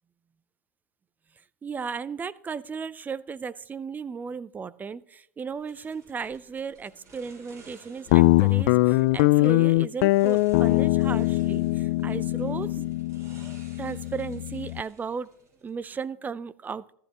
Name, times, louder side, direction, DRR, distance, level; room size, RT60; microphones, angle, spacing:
voice 1, 1.6-12.9 13.8-15.3 15.6-16.9, right 6 dB, 20° right, 18 dB, 0.5 m, -35 dB
sound 1, 5.7-15.8, right 3 dB, 35° right, 6.1 m, -55 dB
Guitar, 8.1-14.8, left 20 dB, 60° left, 0.3 m, -22 dB
14.5 x 13.0 x 3.0 m, 0.69 s
hypercardioid pair, 95°, 9 cm